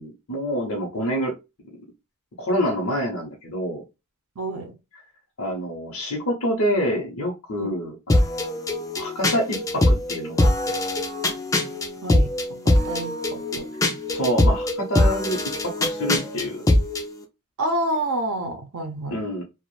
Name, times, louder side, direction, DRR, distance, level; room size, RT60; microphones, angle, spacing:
voice 1, 0.0-1.3 2.4-3.8 5.4-8.2 9.0-10.9 14.1-16.7 19.1-19.4, equal, 60° left, -2 dB, 0.7 m, -27 dB
voice 2, 4.4-4.7 7.6-7.7 12.0-12.3 12.6-13.7 17.6-19.2, right 1 dB, 70° right, 5 dB, 0.6 m, -28 dB
sound 1, 8.1-17.1, left 1 dB, 15° left, 0.3 m, -22 dB
2.4 x 2.0 x 3.0 m, 0.26 s
head